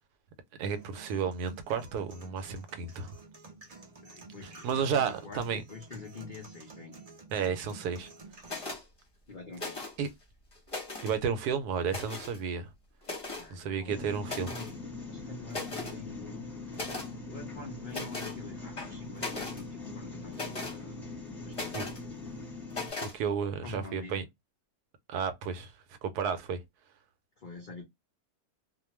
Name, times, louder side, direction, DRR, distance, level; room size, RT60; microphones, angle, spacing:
voice 1, 0.6-3.2 4.4-5.6 7.3-8.1 10.0-10.1 11.0-12.7 13.5-14.5 21.7-21.8 23.0-24.2 25.1-25.7 26.0-26.6, right 6 dB, 80° right, 1.1 m, -32 dB
sound 1, 0.7-8.7, right 3 dB, 55° right, 0.4 m, -51 dB
voice 2, 4.0-7.0 9.3-9.8 13.3-14.7 15.1-16.5 17.2-21.0 21.4-21.8 23.6-24.2 27.4-27.8, left 3 dB, 70° left, 0.4 m, -46 dB
sound 2, 8.4-8.8 9.5-10.1 10.5-11.2 11.9-12.4 13.0-13.5 14.2-14.7 15.1-15.2 15.5-16.0 16.7-17.1 17.9-18.4 18.8-19.6 20.3-20.8 21.5-22.0 22.7-23.1, left 3 dB, 25° left, 0.8 m, -38 dB
sound 3, 13.9-22.9, left 3 dB, ahead, 0.9 m, -42 dB
2.5 x 2.3 x 3.0 m
omnidirectional pair, 1.7 m